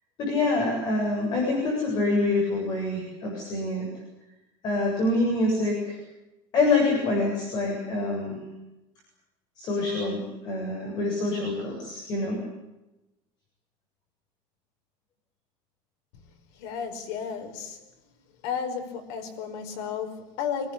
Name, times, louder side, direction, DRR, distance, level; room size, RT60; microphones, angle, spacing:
voice 1, 0.2-3.9 4.6-6.0 6.5-8.4 9.6-12.4, left 2 dB, 35° left, 0 dB, 7.7 m, -26 dB
voice 2, 16.6-17.9 18.4-20.7, left 7 dB, 65° left, 5 dB, 5.3 m, -33 dB
26.0 x 19.0 x 8.6 m, 0.97 s
cardioid pair, 180°, 13 cm